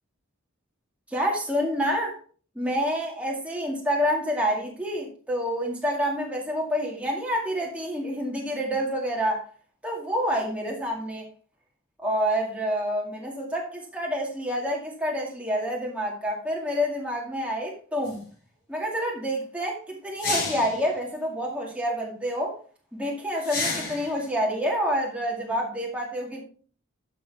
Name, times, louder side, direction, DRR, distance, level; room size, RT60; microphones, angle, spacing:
voice 1, 1.1-2.2 2.6-9.4 9.8-11.3 12.0-18.2 18.7-22.5 22.9-26.4, equal, 5° right, -2 dB, 2.1 m, -28 dB
sound 1, 18.1-18.2 20.2-20.9 23.4-24.2, left 3 dB, 45° left, 3.6 m, -30 dB
11.5 x 6.5 x 3.5 m, 0.42 s
head